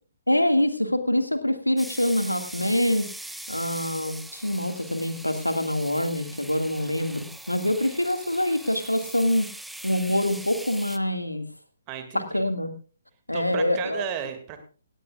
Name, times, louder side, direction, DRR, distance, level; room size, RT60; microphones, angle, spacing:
voice 1, 0.3-3.1 3.5-9.5 9.8-11.5 12.1-12.7 13.3-14.0, left 1 dB, 85° left, 7 dB, 2.0 m, -25 dB
sound 1, 1.8-11.0, right 1 dB, ahead, 0.6 m, -41 dB
voice 2, 11.9-12.4 13.3-14.6, right 8 dB, 25° right, 7 dB, 2.3 m, -34 dB
17.5 x 17.0 x 2.4 m, 0.38 s
figure-of-eight pair, 130°, 0 cm